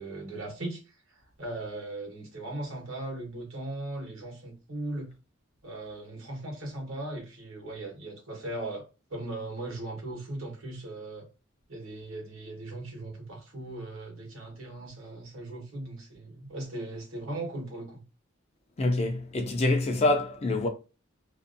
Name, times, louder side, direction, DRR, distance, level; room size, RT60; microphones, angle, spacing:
voice 1, 0.0-5.1 5.6-11.3 11.7-18.0, right 2 dB, 75° right, 1.1 m, -38 dB
voice 2, 18.8-20.7, left 2 dB, 30° left, 0.4 m, -26 dB
2.6 x 2.2 x 2.5 m
head